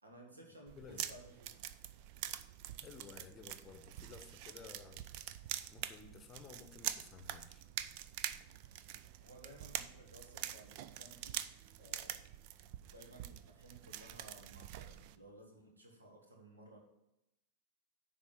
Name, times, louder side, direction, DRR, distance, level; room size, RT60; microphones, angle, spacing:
voice 1, 0.0-1.6 9.2-11.4 11.8-12.2 12.9-16.8, right 1 dB, 75° right, 1 dB, 1.8 m, -57 dB
sound 1, 0.7-15.2, right 12 dB, 45° right, 0.4 m, -45 dB
voice 2, 0.8-1.1 2.8-5.1 5.7-7.6, left 5 dB, 25° left, 7 dB, 0.9 m, -54 dB
10.0 x 3.7 x 7.0 m, 0.89 s
figure-of-eight pair, 90°, 0 cm